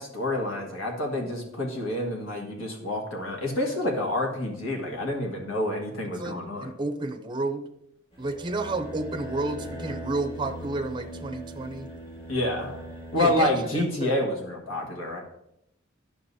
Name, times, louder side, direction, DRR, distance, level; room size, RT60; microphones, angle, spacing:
voice 1, 0.0-6.7 12.3-12.8 13.1-15.2, left 1 dB, 70° left, 0 dB, 1.6 m, -28 dB
voice 2, 6.2-7.6 8.2-11.9 13.2-14.1, right 2 dB, 25° right, 6 dB, 0.6 m, -31 dB
sound 1, 8.1-13.4, right 1 dB, 25° left, 1.8 m, -40 dB
10.5 x 6.7 x 2.7 m, 0.81 s
head